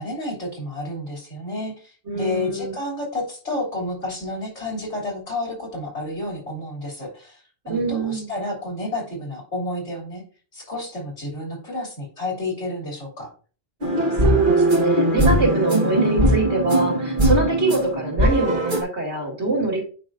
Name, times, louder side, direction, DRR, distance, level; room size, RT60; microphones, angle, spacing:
voice 1, 0.0-10.2 10.5-13.3, left 2 dB, 90° left, -1 dB, 3.2 m, -30 dB
voice 2, 2.1-2.8 7.7-8.3 14.2-19.8, right 2 dB, 70° right, -1 dB, 2.7 m, -24 dB
sound 1, 13.8-18.8, right 1 dB, 45° right, 1.5 m, -20 dB
9.1 x 5.2 x 2.6 m, 0.39 s
omnidirectional pair, 1.2 m